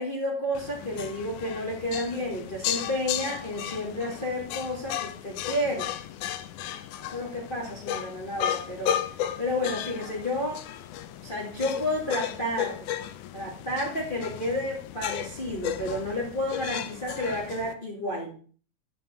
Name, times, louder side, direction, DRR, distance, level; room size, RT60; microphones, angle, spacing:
voice 1, 0.0-5.9 7.0-9.0 9.4-10.6 11.2-12.9 13.3-18.3, left 1 dB, 15° left, -3 dB, 2.2 m, -31 dB
sound 1, 0.5-17.7, left 11 dB, 75° left, 2.1 m, -35 dB
9.2 x 6.2 x 6.6 m, 0.42 s
omnidirectional pair, 3.8 m